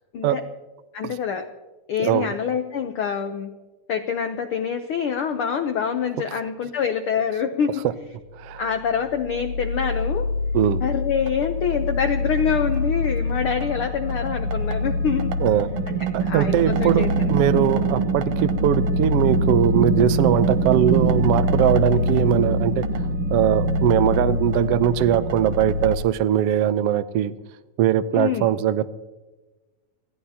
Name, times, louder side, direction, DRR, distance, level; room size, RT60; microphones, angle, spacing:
voice 1, 0.9-1.5 1.9-3.6 3.9-7.8 8.6-10.3 10.8-15.3 15.9-17.8 21.9-22.0 28.1-28.5, left 7 dB, 90° left, 6 dB, 1.2 m, -26 dB
voice 2, 8.3-8.7 10.5-10.8 15.4-15.7 16.1-22.8 23.3-27.3 27.8-28.9, right 11 dB, 80° right, 11 dB, 1.3 m, -21 dB
sound 1, 8.6-26.0, right 1 dB, 60° right, 1.9 m, -24 dB
25.5 x 17.0 x 2.9 m, 1.2 s
omnidirectional pair, 3.6 m